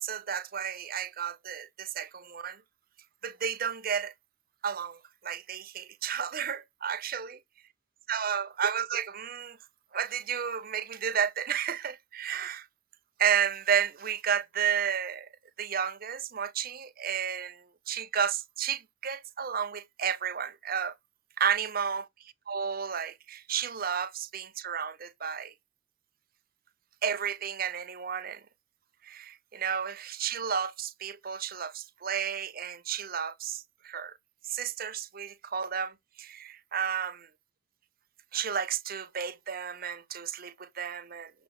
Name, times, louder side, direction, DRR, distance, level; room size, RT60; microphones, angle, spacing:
voice 1, 0.0-2.6 3.2-4.1 4.6-7.4 8.1-9.6 9.9-12.7 13.2-15.3 15.6-20.9 21.4-22.1 22.5-25.5 27.0-28.4 29.0-34.1 34.5-37.3 38.3-41.3, right 8 dB, 45° right, 0.7 m, -32 dB
6.7 x 5.0 x 3.1 m
head